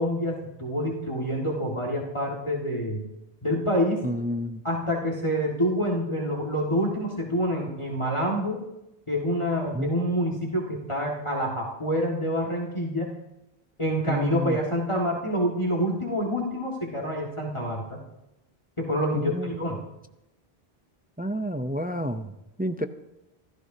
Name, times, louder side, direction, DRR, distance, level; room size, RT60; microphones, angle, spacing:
voice 1, 0.0-3.0 3.4-4.0 4.6-8.6 9.1-13.2 13.8-18.0 18.8-19.8, equal, 30° left, -1 dB, 2.0 m, -27 dB
voice 2, 4.0-4.6 9.7-9.9 14.1-14.6 19.1-19.6 21.2-22.3 22.6-22.9, equal, 15° right, 8 dB, 0.4 m, -29 dB
27.5 x 13.5 x 2.8 m, 0.93 s
omnidirectional pair, 1.0 m